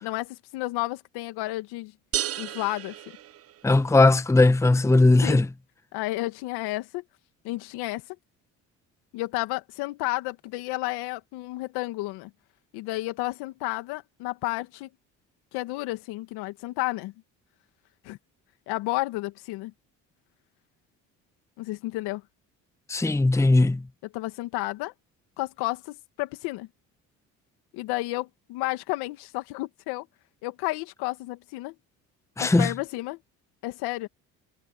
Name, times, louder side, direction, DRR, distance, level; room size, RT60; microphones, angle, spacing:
voice 1, 0.0-1.9 2.4-3.0 5.2-5.4 5.9-7.0 7.4-8.2 9.1-12.3 12.7-14.9 15.5-17.1 18.0-18.2 18.7-19.7 21.6-22.2 24.0-24.9 25.4-26.7 27.7-30.1 30.4-31.8 32.4-33.2 33.6-34.1, left 19 dB, 80° left, 2.1 m, -31 dB
sound 1, 2.1-4.0, right 12 dB, 40° right, 0.6 m, -33 dB
voice 2, 3.6-5.4 22.9-23.8 32.4-32.7, left 2 dB, 5° left, 0.8 m, -18 dB
supercardioid pair, 75°, 39 cm